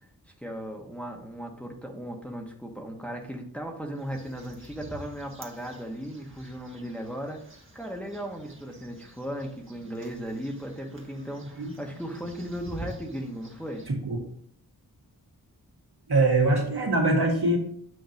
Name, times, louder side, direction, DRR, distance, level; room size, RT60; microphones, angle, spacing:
voice 1, 0.4-7.4 7.7-13.8, equal, 5° left, 1 dB, 1.2 m, -36 dB
sound 1, 4.0-13.9, right 1 dB, 30° right, 1.5 m, -48 dB
voice 2, 13.9-14.2 16.1-17.6, right 2 dB, 75° right, -2 dB, 2.2 m, -23 dB
8.2 x 2.9 x 5.2 m, 0.63 s
wide cardioid pair, 70°, 39 cm